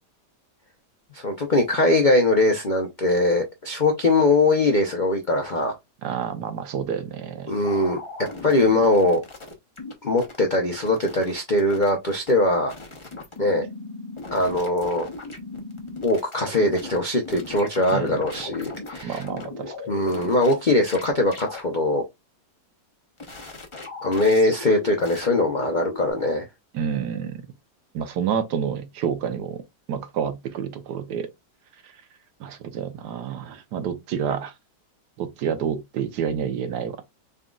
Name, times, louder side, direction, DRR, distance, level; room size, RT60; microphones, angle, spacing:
voice 1, 1.1-5.7 7.5-8.0 8.4-9.2 10.0-12.7 13.4-13.6 14.3-15.1 16.0-19.2 19.9-22.0 24.0-26.5, left 2 dB, 55° left, 0.5 m, -21 dB
voice 2, 6.0-7.5 17.9-18.1 19.0-19.7 26.7-27.4 27.9-29.6 29.9-31.3 32.4-34.5 35.2-37.1, right 8 dB, 70° right, 1.3 m, -28 dB
sound 1, 7.6-9.9 10.2-11.3 11.6-12.3 12.7-17.0 17.2-20.5 20.9-21.0 21.3-21.6 23.2-26.1, left 3 dB, 25° left, 0.7 m, -38 dB
4.0 x 3.7 x 2.3 m
omnidirectional pair, 1.9 m